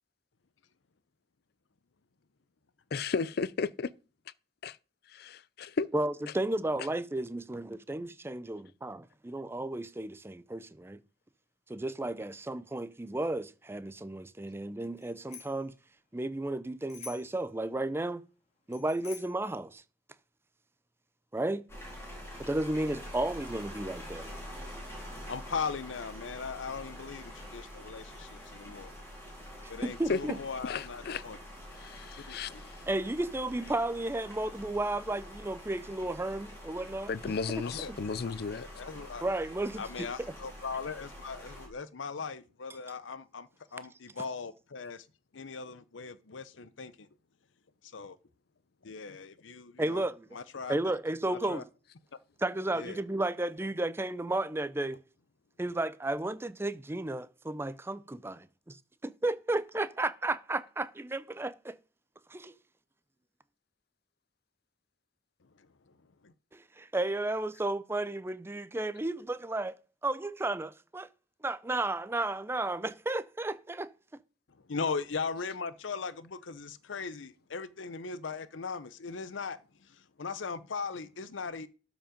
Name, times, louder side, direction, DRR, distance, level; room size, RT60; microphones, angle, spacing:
voice 1, 2.9-3.9 5.8-5.9 30.1-30.2 30.6-31.2 31.8-32.6 37.1-38.7, left 4 dB, 55° left, 0.5 m, -33 dB
voice 2, 5.9-9.0 9.2-11.0 11.7-15.7 16.1-18.2 18.7-19.8 21.3-21.6 22.4-24.3 29.8-30.4 32.9-37.3 37.9-38.0 39.2-40.1 49.8-50.3 50.7-51.6 52.4-55.0 55.6-58.8 59.0-61.7 62.3-62.5 66.5-69.8 70.0-71.1 71.4-73.9, right 2 dB, 15° right, 0.5 m, -33 dB
Bicycle bell, 15.0-15.7 16.9-17.4 18.7-19.5, left 6 dB, 40° left, 2.4 m, -48 dB
sound 1, 21.7-41.7, equal, 15° left, 3.9 m, -46 dB
voice 3, 25.3-28.9 29.7-31.4 32.3-32.6 37.6-37.9 38.2-38.3 38.7-39.3 39.8-45.1 45.3-47.1 47.8-48.2 48.8-50.1 50.3-50.7 51.3-51.6 52.7-53.0 65.4-66.3 74.5-81.7, left 5 dB, 90° left, 0.7 m, -39 dB
12.5 x 5.1 x 5.1 m
head